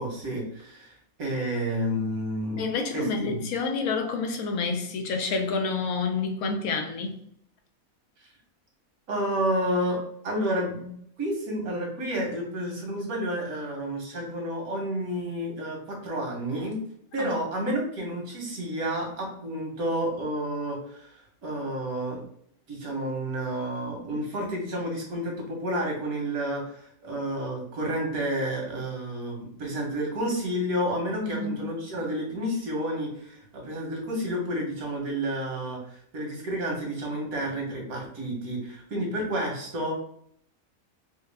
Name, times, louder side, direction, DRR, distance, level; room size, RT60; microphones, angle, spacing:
voice 1, 0.0-2.6 2.9-3.4 9.1-10.0 10.2-16.8 17.1-22.2 22.7-39.9, equal, 90° right, 0 dB, 1.7 m, -30 dB
voice 2, 2.6-7.2 17.2-17.3 31.2-31.7, left 4 dB, 85° left, 5 dB, 1.1 m, -29 dB
4.4 x 2.3 x 3.4 m, 0.66 s
omnidirectional pair, 1.5 m